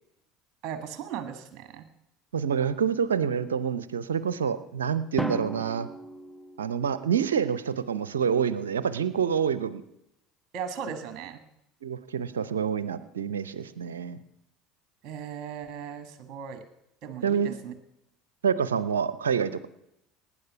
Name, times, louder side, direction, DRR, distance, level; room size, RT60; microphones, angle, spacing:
voice 1, 0.6-1.8 10.5-11.4 15.0-16.6 17.0-17.7, right 7 dB, 50° right, 9 dB, 1.6 m, -37 dB
voice 2, 2.3-5.9 6.6-9.8 11.8-14.2 17.2-17.6 18.4-19.7, right 7 dB, 80° right, 15 dB, 0.6 m, -27 dB
Drum, 5.2-7.2, right 1 dB, 5° right, 0.6 m, -36 dB
18.5 x 10.0 x 5.7 m, 0.84 s
figure-of-eight pair, 70°, 0 cm